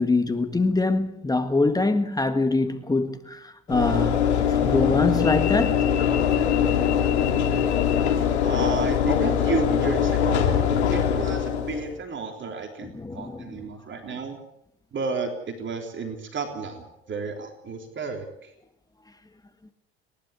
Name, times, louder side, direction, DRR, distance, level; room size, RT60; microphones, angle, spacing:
voice 1, 0.0-5.9 12.8-13.6, left 3 dB, 10° left, 1.8 m, -24 dB
Train / Engine / Alarm, 3.7-11.9, left 8 dB, 85° left, 3.1 m, -22 dB
voice 2, 8.4-10.6 10.9-14.4 14.9-18.5, right 4 dB, 35° right, 3.6 m, -32 dB
29.5 x 11.5 x 8.3 m
hypercardioid pair, 75°, 33 cm